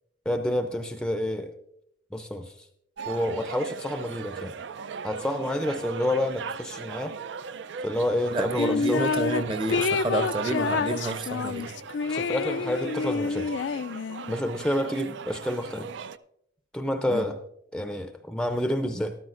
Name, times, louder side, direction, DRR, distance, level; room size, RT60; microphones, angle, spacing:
voice 1, 0.3-1.5 2.1-2.7 3.1-4.5 5.0-7.1 7.8-9.0 12.1-13.6 14.3-15.9 16.7-17.4 17.7-19.2, left 1 dB, 5° left, 7 dB, 0.5 m, -29 dB
sound 1, 3.0-16.2, right 6 dB, 80° right, 0.4 m, -38 dB
voice 2, 8.3-11.7 17.1-17.3, right 1 dB, 30° right, 9 dB, 0.7 m, -29 dB
sound 2, 8.6-9.4 9.7-14.3, left 5 dB, 85° left, 0.3 m, -28 dB
13.5 x 12.5 x 2.5 m, 0.74 s
head